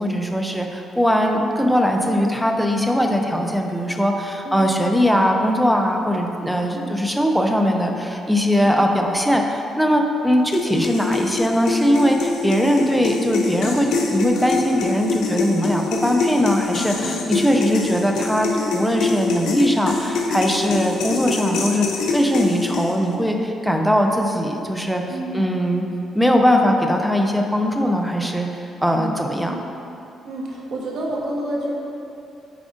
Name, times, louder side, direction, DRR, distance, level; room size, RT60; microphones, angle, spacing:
voice 1, 0.0-25.0 25.3-25.8 26.2-28.5 28.8-29.5, equal, ahead, 2 dB, 0.6 m, -20 dB
sound 1, 10.5-23.1, left 3 dB, 80° left, 0.7 m, -25 dB
voice 2, 17.0-17.3 25.1-25.5 28.9-29.2 29.5-29.7 30.2-31.7, right 1 dB, 65° right, -3 dB, 1.2 m, -30 dB
8.4 x 4.7 x 2.6 m, 2.7 s
cardioid pair, 90°, 0 cm